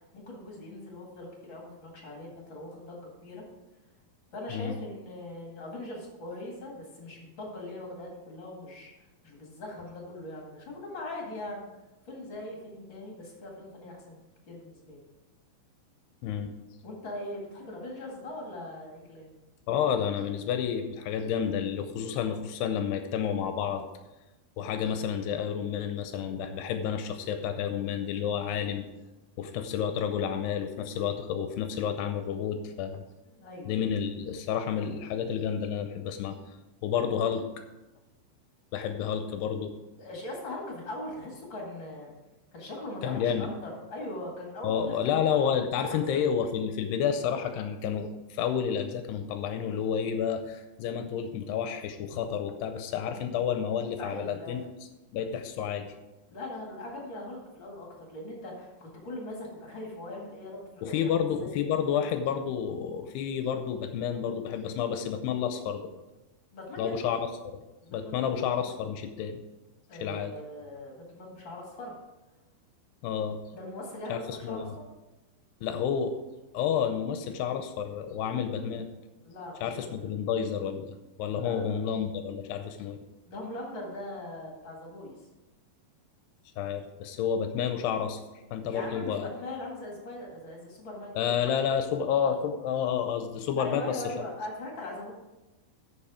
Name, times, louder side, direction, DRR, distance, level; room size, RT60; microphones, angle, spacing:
voice 1, 0.1-3.4 4.3-8.9 9.2-11.7 12.1-14.2 14.5-15.0 16.8-19.3 33.3-33.9 40.0-42.1 42.5-45.2 45.8-46.0 54.0-54.6 56.3-61.5 66.5-67.1 67.8-68.3 69.9-71.9 73.5-74.6 79.2-79.9 81.3-81.9 83.3-85.2 88.7-91.3 93.6-95.1, left 1 dB, 45° left, -1 dB, 1.5 m, -40 dB
voice 2, 19.7-23.9 24.6-28.8 29.4-33.0 33.7-36.6 36.8-37.5 38.7-39.8 43.0-43.5 44.6-54.6 55.1-55.9 60.8-65.9 66.8-67.3 67.5-67.6 67.9-69.4 70.0-70.3 73.0-73.4 74.1-74.6 75.6-76.2 76.5-78.9 79.6-83.0 86.6-88.2 88.5-89.3 91.2-94.1, left 8 dB, 80° left, 7 dB, 2.4 m, -30 dB
13.0 x 5.5 x 4.9 m, 1.0 s
omnidirectional pair, 5.3 m